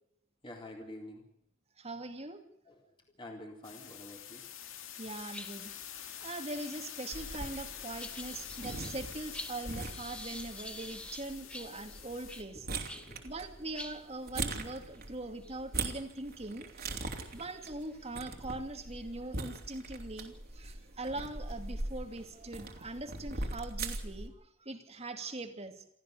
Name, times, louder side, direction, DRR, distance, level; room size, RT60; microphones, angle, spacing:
voice 1, 0.4-1.3 2.6-4.5 11.4-11.5 12.5-12.6 12.9-13.3 16.4-17.3, left 1 dB, 25° left, 1 dB, 3.7 m, -49 dB
voice 2, 1.8-2.4 5.0-5.7 6.2-12.7 13.2-16.7 17.3-24.3 24.6-25.8, right 2 dB, 30° right, 6 dB, 2.5 m, -41 dB
sound 1, 3.6-12.4, left 10 dB, 70° left, 2.4 m, -46 dB
sound 2, 4.2-4.7 5.0-13.2 13.5-13.6 13.7-19.6 20.2-20.4 21.3-21.4 21.9-23.7, left 1 dB, 5° left, 1.6 m, -50 dB
sound 3, 7.1-24.3, right 3 dB, 45° right, 3.2 m, -42 dB
28.5 x 14.0 x 6.8 m, 0.74 s
head